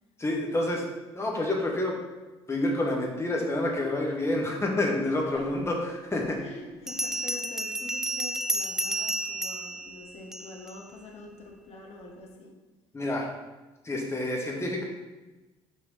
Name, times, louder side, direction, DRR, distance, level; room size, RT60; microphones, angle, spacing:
voice 1, 0.2-0.8 1.1-1.9 2.5-6.4 12.9-13.3 13.8-14.8, left 1 dB, 20° left, -1 dB, 1.7 m, -28 dB
voice 2, 5.0-5.5 6.4-12.5, left 2 dB, 50° left, 0 dB, 1.4 m, -45 dB
Bell, 6.9-10.8, right 1 dB, 5° right, 0.4 m, -31 dB
6.2 x 4.4 x 4.2 m, 1.2 s
figure-of-eight pair, 55°, 14 cm